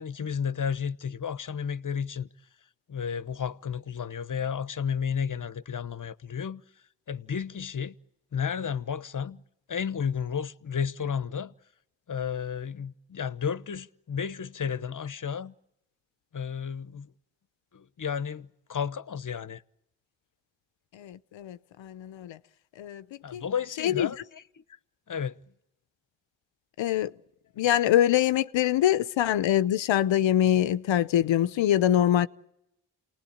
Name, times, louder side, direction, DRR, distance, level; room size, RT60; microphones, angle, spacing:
voice 1, 0.0-2.3 2.9-6.6 7.1-7.9 8.3-9.4 9.7-11.5 12.1-15.5 16.3-17.1 17.7-19.6 23.2-24.6 25.1-25.3, left 7 dB, 45° left, 1.1 m, -32 dB
voice 2, 20.9-22.4 22.8-23.0 23.3-23.4 23.8-24.1 26.8-27.1 27.6-32.3, left 11 dB, 75° left, 0.9 m, -24 dB
28.5 x 19.0 x 8.7 m
supercardioid pair, 45°, 45 cm